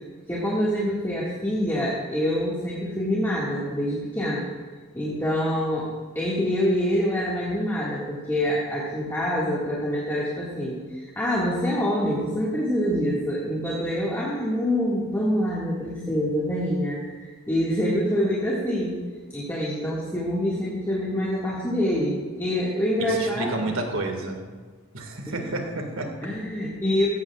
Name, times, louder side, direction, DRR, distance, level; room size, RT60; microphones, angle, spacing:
voice 1, 0.0-4.5 4.9-17.2 17.5-19.0 19.3-23.7 25.3-25.5 26.2-27.1, equal, 10° left, -7 dB, 1.9 m, -26 dB
voice 2, 23.0-24.5 24.9-26.2, right 2 dB, 75° right, 3 dB, 1.9 m, -30 dB
16.5 x 13.5 x 2.4 m, 1.4 s
head